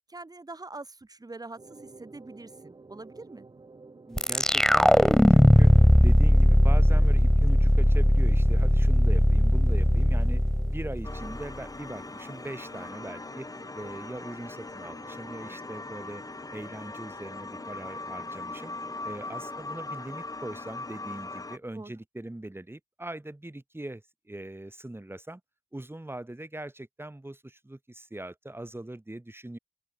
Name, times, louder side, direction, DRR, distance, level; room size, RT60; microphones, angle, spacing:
voice 1, 0.1-3.5 21.7-21.9, right 2 dB, 55° right, 2.0 m, -44 dB
sound 1, 1.6-19.9, right 3 dB, 85° right, 6.6 m, -52 dB
voice 2, 4.1-5.7 6.0-10.4 10.7-13.5 13.7-16.2 16.5-18.7 19.0-25.4 25.7-29.6, right 1 dB, 30° right, 5.8 m, -41 dB
sound 2, 4.2-11.4, equal, 5° left, 0.6 m, -19 dB
sound 3, 11.0-21.6, left 3 dB, 50° left, 1.1 m, -40 dB
open air
wide cardioid pair, 50°, 8 cm